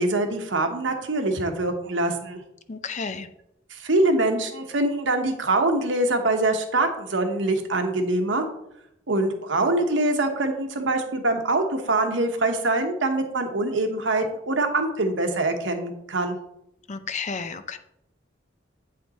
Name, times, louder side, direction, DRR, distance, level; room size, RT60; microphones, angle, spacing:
voice 1, 0.0-2.4 3.7-8.4 9.1-16.4, right 2 dB, 80° right, 5 dB, 1.1 m, -24 dB
voice 2, 2.7-3.3 16.9-17.8, left 5 dB, 40° left, 10 dB, 0.6 m, -32 dB
8.7 x 5.2 x 4.2 m, 0.80 s
head